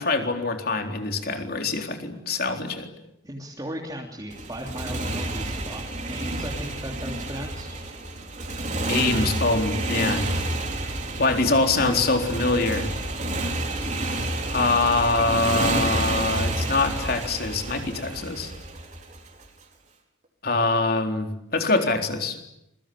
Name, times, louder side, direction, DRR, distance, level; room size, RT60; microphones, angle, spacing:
voice 1, 0.0-2.9 8.9-10.3 11.2-12.9 14.5-18.5 20.4-22.4, left 3 dB, 50° left, 5 dB, 3.9 m, -24 dB
voice 2, 3.2-7.8, equal, 20° right, 0 dB, 3.2 m, -36 dB
Motorcycle, 4.3-19.5, right 2 dB, 35° right, 4.4 m, -29 dB
27.0 x 23.5 x 8.8 m, 0.83 s
head